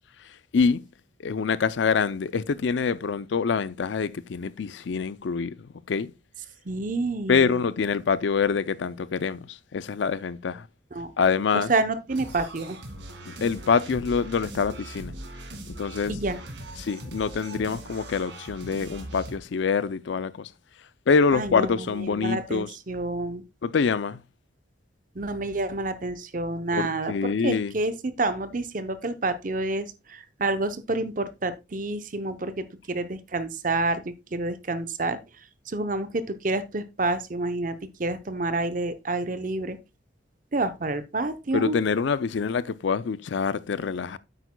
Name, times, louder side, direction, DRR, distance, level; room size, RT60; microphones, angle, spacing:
voice 1, 0.5-0.9 1.2-6.1 7.3-10.7 11.2-11.7 13.3-15.1 15.7-16.1 16.8-20.5 21.1-22.7 23.6-24.2 26.7-27.7 41.5-44.2, left 5 dB, 70° left, 0.4 m, -25 dB
voice 2, 6.7-7.6 10.9-11.1 11.5-12.8 16.1-16.4 21.3-23.4 25.1-35.2 35.7-39.8 40.5-41.8, right 2 dB, 45° right, 0.7 m, -29 dB
sound 1, 12.1-19.4, right 1 dB, 75° right, 2.1 m, -40 dB
9.1 x 8.2 x 2.2 m
head